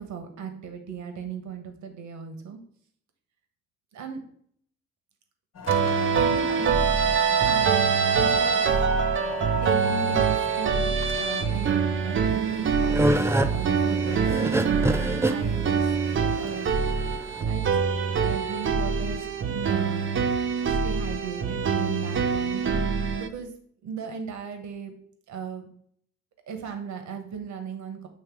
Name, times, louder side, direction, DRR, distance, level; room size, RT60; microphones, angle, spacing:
voice 1, 0.0-2.6 3.9-4.2 6.1-6.8 7.4-8.7 9.3-15.9 16.4-16.7 17.4-17.8 18.1-20.1 20.7-22.6 23.2-23.5 23.8-24.9 25.3-25.7 26.5-28.1, right 6 dB, 70° right, 6 dB, 1.4 m, -36 dB
sound 1, 5.5-15.7, left 6 dB, 55° left, 1.1 m, -41 dB
sound 2, 5.7-23.3, right 6 dB, 40° right, 0.7 m, -24 dB
sound 3, 12.3-17.4, right 1 dB, 10° right, 0.4 m, -26 dB
8.2 x 3.1 x 4.7 m, 0.64 s
cardioid pair, 90°, 30 cm